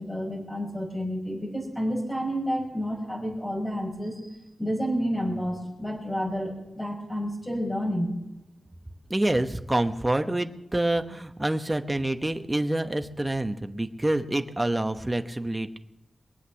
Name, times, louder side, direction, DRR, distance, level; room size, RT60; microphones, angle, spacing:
voice 1, 0.0-4.2 4.6-8.1, equal, 15° left, -1 dB, 5.8 m, -30 dB
voice 2, 9.1-15.8, right 1 dB, 15° right, 7 dB, 1.0 m, -27 dB
23.0 x 8.2 x 7.1 m, 0.92 s
wide cardioid pair, 120°, 0 cm